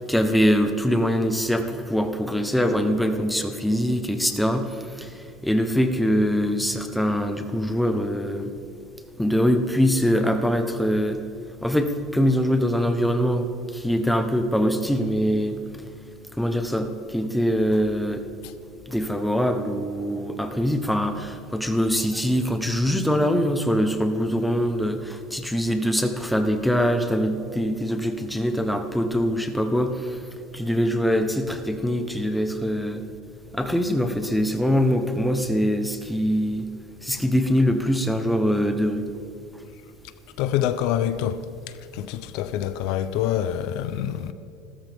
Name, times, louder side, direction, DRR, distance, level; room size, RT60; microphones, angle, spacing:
voice 1, 0.0-8.5 9.2-11.2 11.6-15.6 16.4-18.2 18.9-30.2 30.5-33.0 33.5-36.7 37.0-39.0, equal, ahead, 1.0 m, -23 dB
voice 2, 40.4-41.4 41.9-44.3, left 11 dB, 65° left, 0.7 m, -26 dB
29.5 x 13.5 x 3.6 m
cardioid pair, 155°, 0 cm